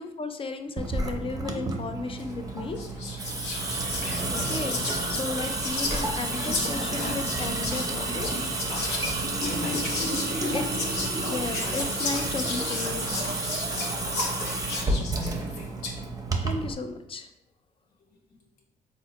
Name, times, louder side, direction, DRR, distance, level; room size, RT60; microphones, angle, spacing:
voice 1, 0.0-2.8 3.2-3.5 4.3-8.6 10.5-10.6 11.3-13.1 16.4-17.3, left 3 dB, 35° left, 7 dB, 0.4 m, -34 dB
Water tap faucet / Sink (filling or washing) / Drip, 0.8-16.7, right 2 dB, 20° right, 0.6 m, -30 dB
Whispering, 2.2-2.4 2.8-16.0, left 3 dB, 85° left, 0.6 m, -35 dB
Water tap faucet / Sink (filling or washing), 8.3-14.2, right 6 dB, 85° right, 0.5 m, -43 dB
voice 2, 8.8-11.1 13.5-15.7 18.0-18.4, left 2 dB, 60° left, 0 dB, 0.9 m, -45 dB
3.8 x 2.1 x 2.9 m, 0.81 s
supercardioid pair, 60°, 17 cm